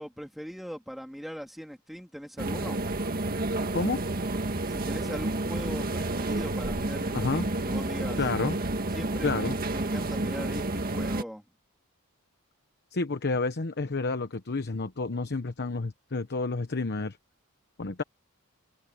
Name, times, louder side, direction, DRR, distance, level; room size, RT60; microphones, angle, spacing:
voice 1, 0.0-2.8 4.7-8.2 8.9-11.4, equal, ahead, 3.2 m, -40 dB
sound 1, 2.4-11.2, right 2 dB, 45° right, 1.8 m, -30 dB
voice 2, 7.1-7.5 8.2-8.6 9.2-9.6 12.9-17.2 17.8-18.0, left 3 dB, 50° left, 1.0 m, -30 dB
head